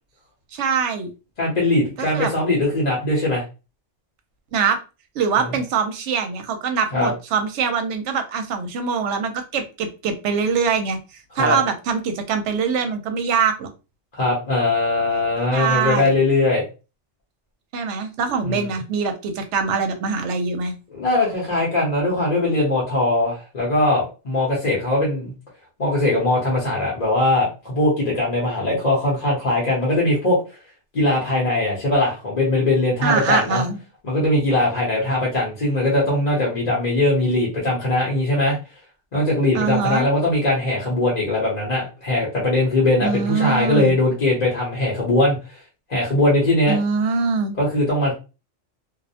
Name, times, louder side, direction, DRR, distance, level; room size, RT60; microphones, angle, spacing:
voice 1, 0.5-1.1 2.0-2.3 4.5-4.8 5.2-11.0 11.4-13.7 15.5-16.2 17.7-20.7 33.0-33.8 39.5-40.1 43.0-44.0 46.7-47.6, right 5 dB, 70° right, 6 dB, 0.8 m, -23 dB
voice 2, 1.4-3.4 6.9-7.1 11.4-11.6 14.1-16.6 18.5-18.8 20.9-25.3 25.8-30.4 30.9-33.6 34.0-38.6 39.1-45.4 45.9-46.8 47.6-48.1, left 2 dB, 40° left, -4 dB, 0.8 m, -20 dB
2.4 x 2.0 x 2.7 m, 0.30 s
omnidirectional pair, 1.3 m